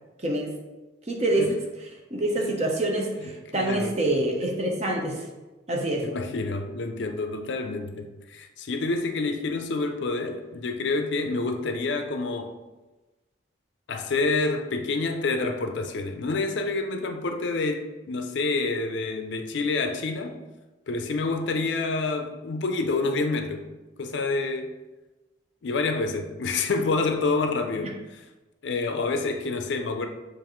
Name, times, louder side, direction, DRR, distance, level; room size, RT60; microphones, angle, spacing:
voice 1, 0.2-0.5 1.1-1.6 2.1-5.2 5.7-6.1, right 1 dB, 35° right, 0 dB, 0.7 m, -26 dB
voice 2, 3.2-3.9 6.0-12.6 13.9-20.4 20.9-23.7 24.0-24.8 25.6-28.2 28.6-30.1, left 3 dB, 65° left, 5 dB, 0.4 m, -28 dB
7.0 x 2.5 x 3.0 m, 1.1 s
head